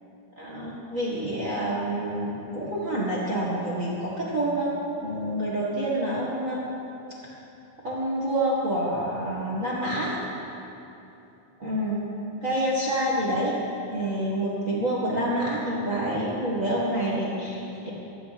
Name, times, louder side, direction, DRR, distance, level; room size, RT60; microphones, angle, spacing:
voice 1, 0.4-6.7 7.8-10.2 11.6-12.0 12.4-13.5 13.9-17.9, right 1 dB, 30° right, -6 dB, 1.5 m, -27 dB
25.0 x 11.0 x 4.3 m, 2.9 s
omnidirectional pair, 4.4 m